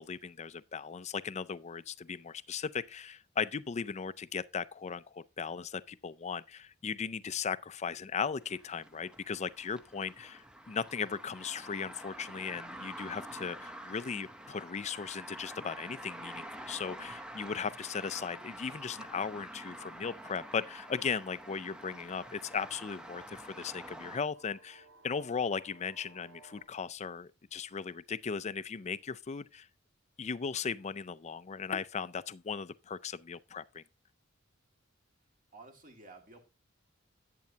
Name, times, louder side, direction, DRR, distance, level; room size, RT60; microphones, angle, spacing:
voice 1, 0.0-29.7 30.2-33.8, left 6 dB, 35° left, 0.4 m, -37 dB
sound 1, 8.4-24.2, right 1 dB, 5° right, 0.8 m, -47 dB
sound 2, 17.9-26.6, right 2 dB, 85° right, 3.8 m, -63 dB
voice 2, 35.5-36.4, right 3 dB, 40° right, 2.2 m, -52 dB
10.5 x 8.6 x 2.8 m
head